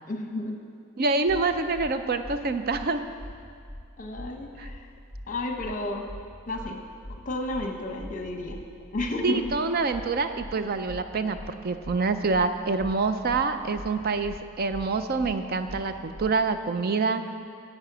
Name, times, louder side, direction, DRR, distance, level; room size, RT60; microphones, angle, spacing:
voice 1, 0.1-0.6 4.0-4.9 5.3-6.0 6.5-6.8 7.2-8.6 8.9-9.5, left 2 dB, 35° left, 3 dB, 1.0 m, -31 dB
voice 2, 1.0-3.0 4.6-4.7 9.2-11.4 11.6-17.2, right 4 dB, 45° right, 9 dB, 0.5 m, -26 dB
sound 1, 1.3-1.4 1.7-1.9 2.2-2.4 2.7-2.9 3.2-3.3 3.7-3.8 4.1-4.3 4.6-4.8 5.1-5.3 5.6-5.7 6.1-6.2 6.5-6.7 7.0-7.2 7.5-7.7 8.0-8.1 8.5-8.6 8.9-9.1 9.4-9.6 9.9-10.1 10.4-10.5 10.9-11.0 11.3-11.5 11.8-12.0 12.3-12.5 12.8-12.9 13.3-13.4 13.7-13.9 14.2-14.4 14.7-14.9 15.2-15.3 15.7-15.8 16.1-16.3, equal, 65° right, 2.6 m, -40 dB
10.5 x 7.7 x 6.1 m, 2.3 s
head